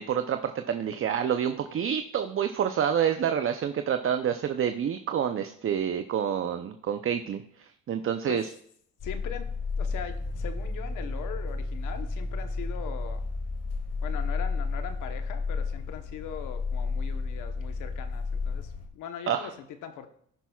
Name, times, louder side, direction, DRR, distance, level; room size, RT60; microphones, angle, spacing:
voice 1, 0.0-8.5 19.3-19.5, right 8 dB, 45° right, 8 dB, 0.6 m, -28 dB
voice 2, 9.0-9.5 9.8-13.2 14.0-20.1, left 8 dB, 85° left, 7 dB, 1.0 m, -40 dB
sound 1, 9.0-18.9, left 4 dB, 55° left, 1.6 m, -32 dB
16.5 x 5.8 x 2.3 m, 0.65 s
cardioid pair, 90°, 30 cm